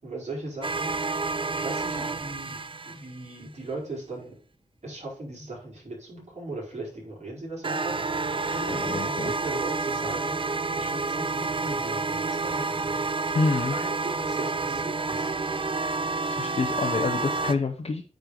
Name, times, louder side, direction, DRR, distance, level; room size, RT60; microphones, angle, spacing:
voice 1, 0.0-1.0 1.5-2.6 2.9-4.4 4.8-13.2 13.5-15.6, right 2 dB, 60° right, -4 dB, 4.8 m, -38 dB
sound 1, 0.6-3.4 7.6-17.5, right 3 dB, 40° right, 0.6 m, -29 dB
voice 2, 8.7-9.3 13.3-13.7 16.3-18.1, left 3 dB, 50° left, 3 dB, 0.8 m, -27 dB
9.2 x 5.3 x 4.9 m, 0.41 s
wide cardioid pair, 110°, 13 cm